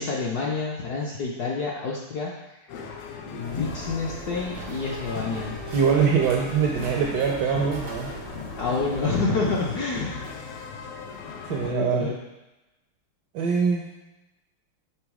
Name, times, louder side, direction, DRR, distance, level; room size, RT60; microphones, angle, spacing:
voice 1, 0.0-2.3 3.3-5.6 8.6-10.2 11.6-12.2, left 4 dB, 70° left, -3 dB, 0.9 m, -28 dB
sound 1, 2.7-11.7, left 5 dB, 85° left, 1.6 m, -37 dB
sound 2, 3.4-9.2, right 3 dB, 60° right, 0.7 m, -40 dB
voice 2, 5.7-8.1 11.5-12.1 13.3-13.9, right 6 dB, 80° right, 0 dB, 0.9 m, -23 dB
6.1 x 3.3 x 4.7 m, 1.0 s
omnidirectional pair, 2.4 m